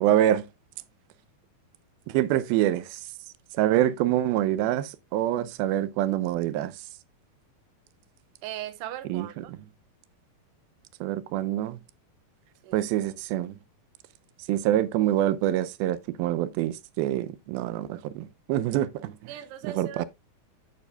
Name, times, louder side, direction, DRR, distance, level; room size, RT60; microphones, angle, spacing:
voice 1, 0.0-0.4 2.1-3.0 3.5-6.7 9.1-9.3 11.0-11.8 12.7-13.5 14.5-19.1 19.6-20.1, right 13 dB, 90° right, 2.4 m, -25 dB
voice 2, 8.4-9.5 12.6-12.8 19.3-20.1, right 12 dB, 75° right, 2.4 m, -38 dB
9.3 x 8.3 x 2.2 m
omnidirectional pair, 4.2 m